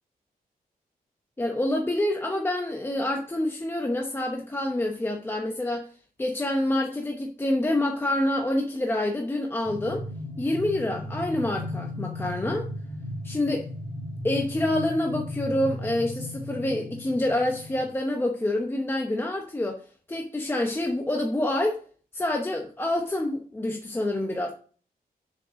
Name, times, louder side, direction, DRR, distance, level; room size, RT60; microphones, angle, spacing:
voice 1, 1.4-5.9 6.2-10.0 10.4-12.7 13.2-13.7 14.2-19.8 20.1-21.8 22.1-24.5, left 1 dB, 15° left, 0.8 m, -27 dB
sound 1, 9.6-17.8, left 1 dB, 5° right, 1.6 m, -36 dB
7.4 x 6.3 x 5.1 m
wide cardioid pair, 170°, 16 cm